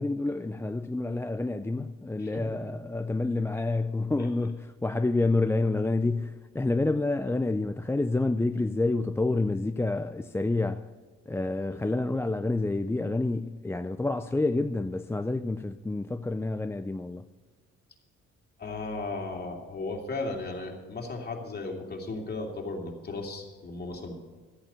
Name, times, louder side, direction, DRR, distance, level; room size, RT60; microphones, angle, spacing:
voice 1, 0.0-10.9 11.3-17.3, left 2 dB, 10° left, 0.4 m, -28 dB
voice 2, 18.6-24.1, left 3 dB, 30° left, 2.9 m, -35 dB
13.5 x 8.9 x 6.9 m
cardioid pair, 90°, 30 cm